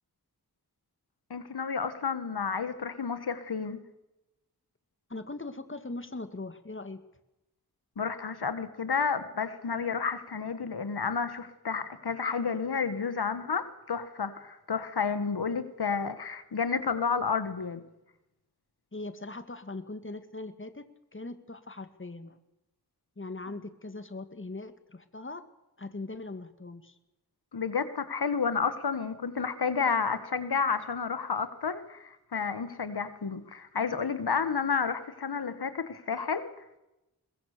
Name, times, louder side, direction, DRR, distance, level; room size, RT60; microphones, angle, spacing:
voice 1, 1.3-3.8 8.0-17.8 27.5-36.5, left 5 dB, 85° left, 11 dB, 1.8 m, -31 dB
voice 2, 5.1-7.0 18.9-20.9 21.1-22.4 23.2-25.5 25.8-27.0, left 2 dB, 30° left, 10 dB, 2.1 m, -40 dB
22.5 x 21.5 x 6.8 m, 0.93 s
wide cardioid pair, 60°, 37 cm